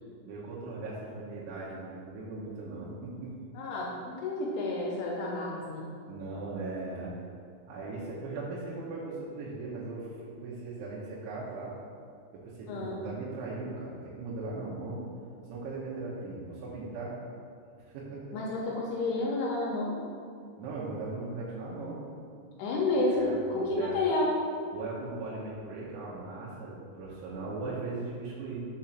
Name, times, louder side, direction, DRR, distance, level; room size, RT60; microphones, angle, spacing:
voice 1, 0.2-3.3 6.1-7.1 7.7-11.8 12.3-15.0 15.5-17.2 17.8-18.3 20.6-22.0 23.1-24.0 24.7-28.7, right 3 dB, 75° right, -7 dB, 3.3 m, -38 dB
voice 2, 3.5-5.9 12.7-13.0 18.3-20.0 22.6-24.3, left 2 dB, 80° left, -3 dB, 2.5 m, -30 dB
7.5 x 3.7 x 5.8 m, 2.3 s
omnidirectional pair, 5.5 m